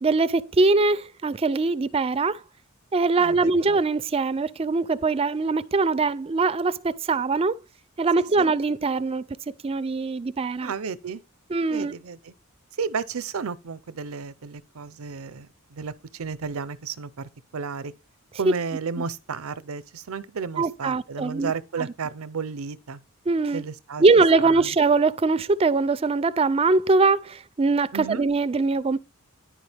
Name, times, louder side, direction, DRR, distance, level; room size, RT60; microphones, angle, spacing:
voice 1, 0.0-2.4 2.9-7.6 8.0-9.2 9.6-10.7 11.5-11.9 18.5-18.6 20.6-21.5 23.3-23.6 24.0-29.0, right 3 dB, 25° right, 0.4 m, -22 dB
voice 2, 3.2-3.5 8.2-8.5 10.6-11.2 11.7-12.3 12.8-17.9 18.4-23.0 23.5-24.0 24.4-24.7 27.9-28.3, right 5 dB, 90° right, 0.6 m, -33 dB
10.5 x 5.0 x 3.4 m
head